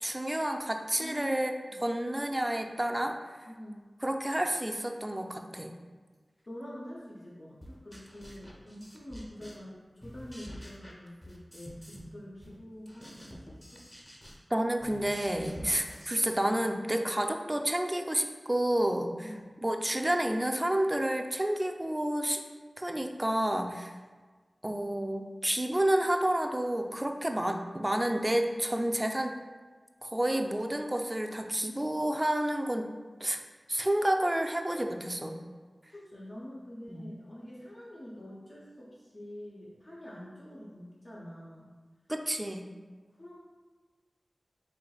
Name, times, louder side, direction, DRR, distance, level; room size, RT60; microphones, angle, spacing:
voice 1, 0.0-1.5 1.8-3.2 4.0-5.7 14.5-19.3 19.6-22.4 22.8-23.9 24.6-29.3 30.0-32.9 33.2-33.4 33.7-35.4 36.9-37.0 42.1-42.7, right 1 dB, 20° right, 4 dB, 0.3 m, -30 dB
voice 2, 1.0-1.4 1.7-1.8 3.5-3.8 6.5-13.8 15.6-15.8 19.0-19.5 35.9-41.7 43.2-43.4, equal, 65° left, -7 dB, 0.7 m, -46 dB
sound 1, 7.6-9.7 10.0-12.1 12.4-16.8, equal, 20° left, 0.6 m, -48 dB
4.4 x 3.2 x 2.3 m, 1.4 s
wide cardioid pair, 45°, 0 cm